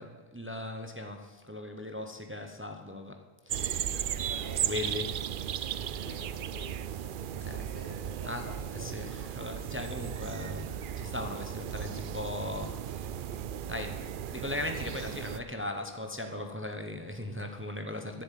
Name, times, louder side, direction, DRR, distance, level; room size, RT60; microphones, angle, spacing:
voice 1, 0.0-3.9 4.6-5.2 6.9-7.0 7.4-7.7 8.2-13.1 13.7-18.2, left 2 dB, 15° right, 5 dB, 1.0 m, -38 dB
sound 1, 3.5-15.4, right 9 dB, 60° right, 0.7 m, -36 dB
voice 2, 4.1-5.1 5.9-6.9 7.3-9.0, left 2 dB, 70° left, 2 dB, 2.3 m, -49 dB
11.0 x 7.6 x 9.3 m, 1.3 s
omnidirectional pair, 1.0 m